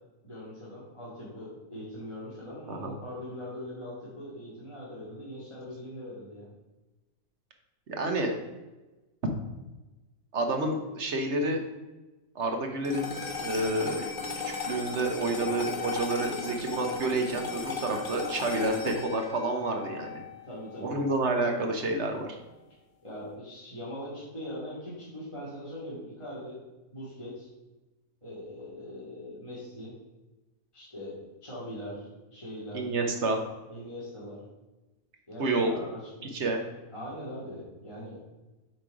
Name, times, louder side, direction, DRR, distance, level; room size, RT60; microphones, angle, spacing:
voice 1, 0.2-6.5 20.5-21.0 23.0-26.6 26.9-27.5 28.2-29.9 30.7-32.9 33.7-34.4 35.3-36.4 36.9-38.2, equal, 20° left, -9 dB, 2.0 m, -41 dB
voice 2, 8.0-8.3 10.3-11.6 12.3-13.1 13.4-14.0 14.6-20.2 20.8-22.4 32.7-33.4 35.4-35.7 36.3-36.6, right 2 dB, 50° right, 4 dB, 1.1 m, -29 dB
sound 1, 12.8-21.4, left 5 dB, 40° left, 0.9 m, -36 dB
7.6 x 4.5 x 4.7 m, 1.1 s
omnidirectional pair, 1.7 m